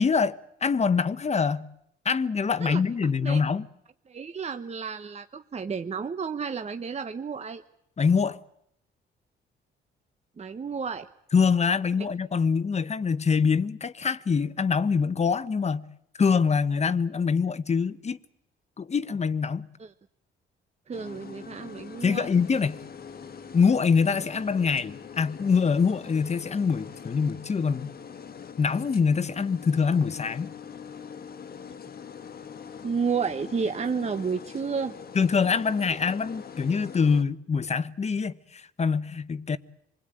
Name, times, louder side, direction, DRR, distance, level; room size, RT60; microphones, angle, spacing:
voice 1, 0.0-1.7 2.0-3.7 8.0-8.4 11.3-15.9 16.2-18.2 18.8-19.7 22.0-22.8 23.5-27.9 28.6-30.5 35.1-39.6, left 5 dB, 35° left, 1.1 m, -24 dB
voice 2, 4.1-7.6 10.4-11.1 19.8-19.9 20.9-22.3 32.8-34.9, right 5 dB, 35° right, 1.1 m, -31 dB
sound 1, 20.9-37.2, left 7 dB, 50° left, 1.6 m, -43 dB
27.0 x 21.0 x 9.0 m
cardioid pair, 90°, 20 cm